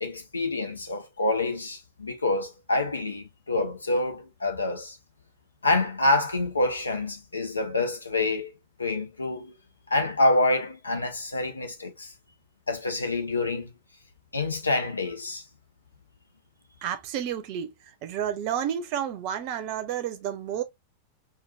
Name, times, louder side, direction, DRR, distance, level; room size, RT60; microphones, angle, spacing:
voice 1, 0.0-5.0 5.6-8.5 8.8-9.5 9.9-12.1 12.7-13.7 14.3-15.4, left 2 dB, 80° left, 0.9 m, -27 dB
voice 2, 16.8-17.7 18.0-20.6, right 9 dB, 45° right, 0.7 m, -30 dB
4.6 x 2.5 x 2.5 m
figure-of-eight pair, 90°, 0 cm